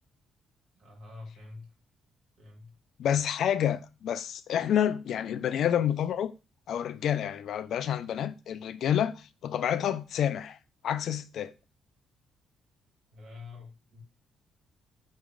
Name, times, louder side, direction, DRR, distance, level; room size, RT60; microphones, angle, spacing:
voice 1, 0.8-1.7 2.4-2.8 13.1-14.0, left 3 dB, 80° right, 1.8 m, -47 dB
voice 2, 3.0-6.3 6.7-10.6 10.8-11.5, left 9 dB, 70° left, 0.4 m, -29 dB
4.6 x 3.2 x 3.6 m
cardioid pair, 90°, 0 cm